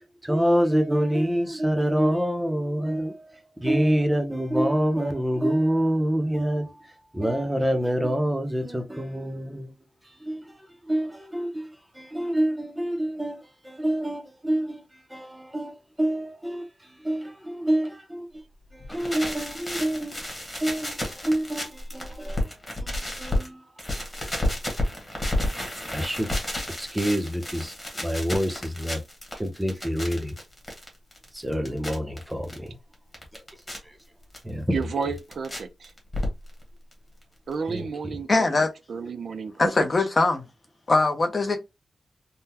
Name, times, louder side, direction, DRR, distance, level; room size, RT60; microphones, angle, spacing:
voice 1, 0.0-9.7 10.2-14.8 15.1-18.3 18.7-20.2 20.6-23.6 25.9-26.3 26.8-27.7 28.0-29.0 29.4-30.4 31.3-32.8 33.3-33.4 33.8-34.0 34.4-34.8 37.7-38.2, equal, 10° right, 0.6 m, -27 dB
sound 1, 18.8-23.5 23.8-32.6 32.9-33.8 34.3-34.4 34.8-35.6 35.8-36.6 36.9-37.0 37.2-37.3 37.5-37.6, left 1 dB, 10° left, 1.2 m, -31 dB
voice 2, 34.7-35.9 37.5-38.5 38.9-39.7, right 5 dB, 60° right, 0.4 m, -31 dB
voice 3, 38.3-38.7 39.6-40.4 40.9-41.6, left 3 dB, 30° left, 0.7 m, -21 dB
3.7 x 2.1 x 2.8 m
wide cardioid pair, 155°, 0 cm